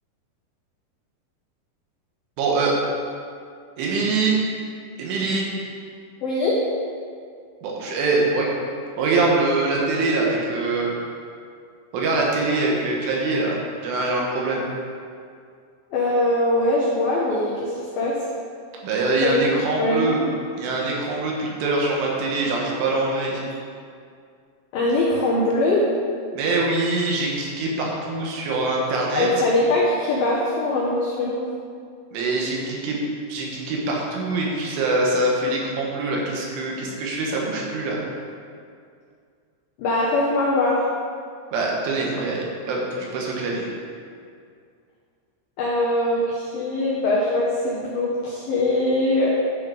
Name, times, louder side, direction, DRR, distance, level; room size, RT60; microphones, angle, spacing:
voice 1, 2.4-2.8 3.8-4.4 5.0-5.5 7.6-8.5 9.0-10.9 11.9-14.7 18.8-20.2 20.6-23.6 26.3-29.3 32.1-33.0 33.3-38.0 41.5-43.7, right 3 dB, 75° right, -2 dB, 3.8 m, -24 dB
voice 2, 6.2-6.6 15.9-18.2 19.2-19.5 19.8-20.1 24.7-25.8 29.2-31.4 39.8-40.8 45.6-49.3, left 2 dB, 85° left, -5 dB, 2.0 m, -22 dB
11.0 x 6.5 x 5.0 m, 2.2 s
omnidirectional pair, 5.8 m